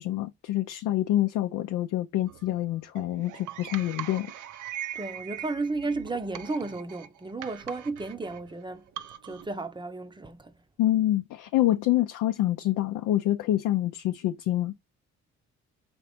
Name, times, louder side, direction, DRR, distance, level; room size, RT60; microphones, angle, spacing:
voice 1, 0.0-4.3 10.8-14.7, left 14 dB, 90° left, 0.5 m, -26 dB
sound 1, 2.3-9.5, right 11 dB, 80° right, 0.6 m, -41 dB
voice 2, 4.9-8.8 9.2-10.5, right 3 dB, 15° right, 0.6 m, -33 dB
5.1 x 2.9 x 3.5 m
cardioid pair, 90°, 30 cm